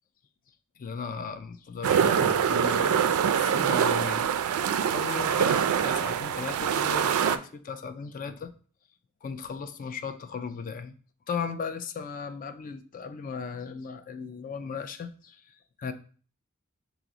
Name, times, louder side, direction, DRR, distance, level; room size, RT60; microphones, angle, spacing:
voice 1, 0.8-4.3 4.9-8.5 9.2-10.9 11.3-15.9, left 5 dB, 40° left, 9 dB, 0.4 m, -37 dB
sound 1, 1.8-7.4, right 8 dB, 75° right, 0.3 m, -24 dB
5.8 x 2.0 x 3.8 m, 0.42 s
head